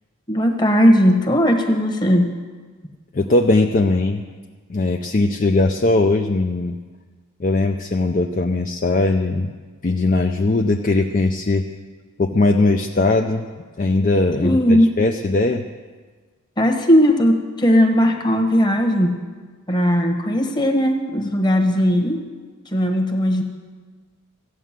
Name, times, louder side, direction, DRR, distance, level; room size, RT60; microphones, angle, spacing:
voice 1, 0.3-2.3 14.4-14.9 16.6-19.2 19.7-22.2 22.7-23.4, equal, 20° left, 4 dB, 1.2 m, -17 dB
voice 2, 3.1-4.2 4.7-6.7 7.4-9.5 9.8-11.7 12.2-13.5 13.8-15.6, left 2 dB, 35° left, 4 dB, 0.5 m, -19 dB
14.5 x 9.3 x 7.4 m, 1.5 s
head